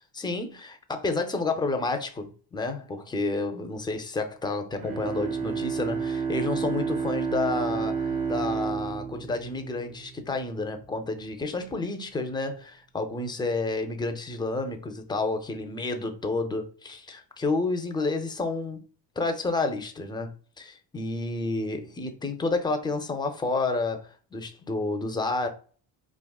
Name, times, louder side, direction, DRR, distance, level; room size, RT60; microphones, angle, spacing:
voice 1, 0.1-18.8 19.2-20.3 20.6-25.5, left 3 dB, 10° left, 0.3 m, -30 dB
Bowed string instrument, 4.8-10.3, right 5 dB, 55° right, 0.9 m, -30 dB
3.5 x 2.4 x 2.3 m
cardioid pair, 100°, 43 cm